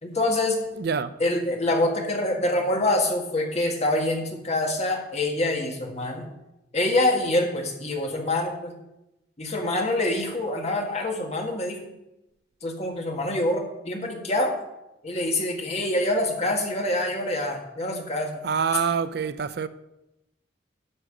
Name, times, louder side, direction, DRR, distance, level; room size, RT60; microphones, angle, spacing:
voice 1, 0.0-0.6 1.2-6.3 6.7-8.7 9.4-11.8 12.6-14.6 15.0-18.4, left 1 dB, 35° left, 1.7 m, -25 dB
voice 2, 0.8-1.1 18.4-19.7, right 6 dB, 60° right, 0.4 m, -26 dB
11.0 x 6.3 x 5.0 m
head